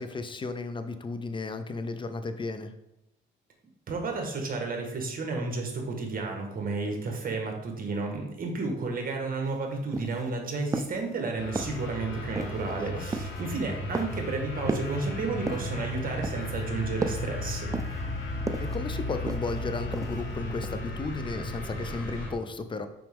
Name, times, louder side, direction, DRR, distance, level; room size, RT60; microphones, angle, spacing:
voice 1, 0.0-2.7 12.7-13.0 18.6-22.9, left 3 dB, 25° left, 9 dB, 0.6 m, -34 dB
voice 2, 3.9-17.7, right 3 dB, 45° right, 2 dB, 1.6 m, -32 dB
sound 1, 9.4-9.5 9.9-10.3 10.7-11.0 11.5-11.9 12.4-12.7 13.1-13.4 13.9-14.3 14.7-15.0 15.5-15.8 16.2-16.6 17.0-17.3 17.7-18.1 18.5-18.8 19.3-19.6 19.9-20.3 20.6-20.7, right 3 dB, 15° right, 0.4 m, -34 dB
sound 2, 11.4-22.3, left 2 dB, 80° left, 1.7 m, -35 dB
5.9 x 4.9 x 3.6 m, 0.84 s
cardioid pair, 90°, 20 cm